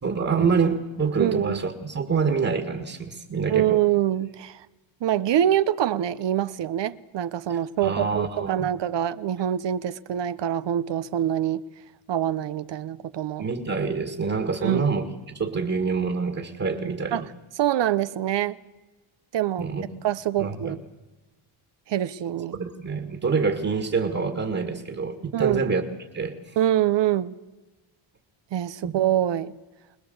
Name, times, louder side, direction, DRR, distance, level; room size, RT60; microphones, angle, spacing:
voice 1, 0.0-3.8 7.5-8.7 13.4-17.3 19.6-19.9 20.4-20.7 22.5-25.8 26.1-26.6 28.8-29.0, right 5 dB, 30° right, 2.1 m, -26 dB
voice 2, 1.2-1.6 3.4-4.6 5.0-11.6 12.1-13.5 14.6-14.8 17.1-17.2 17.6-18.6 19.3-19.7 20.0-20.8 21.9-22.6 25.3-25.6 26.6-27.4 28.5-29.5, right 11 dB, 60° right, 0.9 m, -25 dB
25.5 x 20.5 x 8.0 m
cardioid pair, 145°, 48 cm